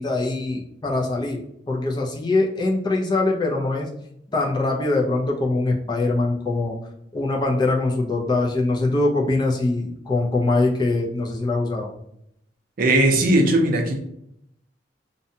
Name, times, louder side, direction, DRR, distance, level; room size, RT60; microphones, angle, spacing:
voice 1, 0.0-3.9 4.3-6.8 7.1-11.9, left 2 dB, 25° left, -1 dB, 0.4 m, -23 dB
voice 2, 12.8-14.0, right 1 dB, 50° right, 3 dB, 0.5 m, -18 dB
2.6 x 2.2 x 2.7 m, 0.73 s
head